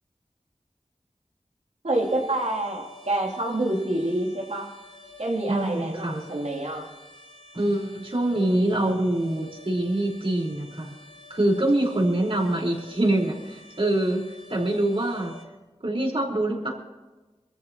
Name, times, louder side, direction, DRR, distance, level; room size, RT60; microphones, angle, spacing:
voice 1, 1.8-4.7 5.2-6.9, right 1 dB, 75° right, -2 dB, 3.2 m, -27 dB
sound 1, 1.9-15.4, left 2 dB, 60° left, 4.4 m, -48 dB
voice 2, 5.5-6.2 7.5-10.9 11.3-14.2 14.5-15.3 15.8-16.7, right 1 dB, 55° right, -2 dB, 4.8 m, -24 dB
24.5 x 14.5 x 3.1 m, 1.2 s
wide cardioid pair, 40°, 11 cm